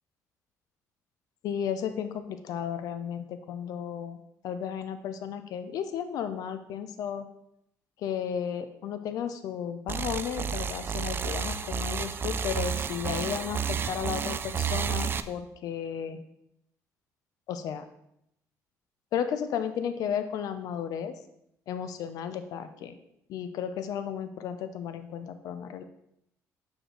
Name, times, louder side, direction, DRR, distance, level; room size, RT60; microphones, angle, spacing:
voice 1, 1.4-4.2 4.4-7.3 8.0-13.6 13.9-16.2 17.5-17.8 19.1-21.1 21.7-22.9 23.3-25.8, left 8 dB, 70° left, 10 dB, 0.5 m, -34 dB
sound 1, 9.9-15.2, right 6 dB, 35° right, 0.3 m, -31 dB
6.3 x 4.9 x 3.8 m, 0.77 s
cardioid pair, 110°, 6 cm